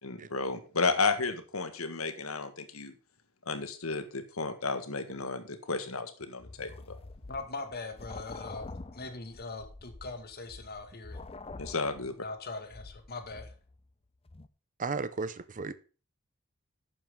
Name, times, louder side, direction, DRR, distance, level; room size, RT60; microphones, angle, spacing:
voice 1, 0.0-2.9 3.4-6.7 11.6-12.1, left 4 dB, 85° left, 1.7 m, -32 dB
sound 1, 6.4-13.9 14.3-14.5, left 2 dB, 30° left, 0.7 m, -46 dB
voice 2, 7.3-8.6 8.9-11.2 12.2-13.5, left 3 dB, 50° left, 2.1 m, -41 dB
voice 3, 14.8-15.7, right 4 dB, 40° right, 0.7 m, -34 dB
12.0 x 9.0 x 3.8 m
head